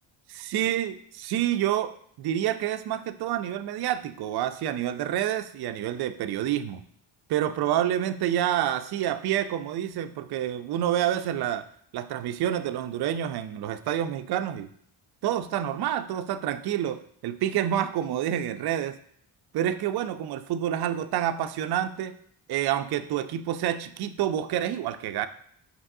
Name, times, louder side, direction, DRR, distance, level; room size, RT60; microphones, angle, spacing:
voice 1, 0.3-1.9 2.2-6.8 7.3-11.7 11.9-14.7 15.2-19.0 19.5-22.2 22.5-25.3, right 11 dB, 55° right, 11 dB, 0.5 m, -28 dB
5.2 x 3.1 x 2.6 m, 0.65 s
supercardioid pair, 55°, 48 cm